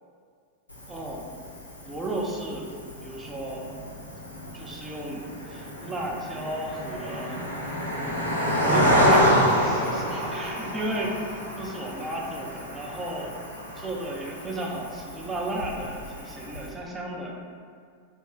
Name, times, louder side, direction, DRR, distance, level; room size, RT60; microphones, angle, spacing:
Cricket, 0.7-16.7, equal, 80° left, 0.5 m, -28 dB
voice 1, 0.9-1.2 1.8-2.7 3.0-3.6 4.5-7.4 8.0-8.3 8.6-13.3 13.8-17.4, right 1 dB, 15° right, -2 dB, 0.4 m, -34 dB
2.9 x 2.1 x 3.1 m, 2.1 s
figure-of-eight pair, 90°, 0 cm